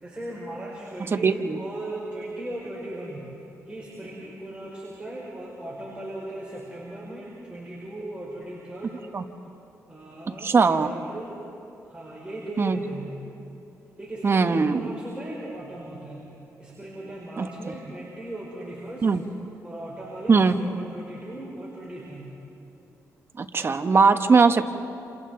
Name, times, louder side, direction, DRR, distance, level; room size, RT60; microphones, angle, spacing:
voice 1, 0.0-3.3 3.7-9.0 9.9-11.4 11.8-13.3 14.0-16.3 16.6-19.1 19.6-22.4, right 1 dB, 15° right, -5 dB, 4.9 m, -37 dB
voice 2, 1.1-1.6 9.1-9.2 10.3-10.9 12.6-12.8 14.2-14.9 17.4-17.5 19.0-19.2 20.3-20.6 23.4-24.6, right 4 dB, 40° right, 8 dB, 1.1 m, -20 dB
29.0 x 28.0 x 3.9 m, 2.7 s
cardioid pair, 85°, 6 cm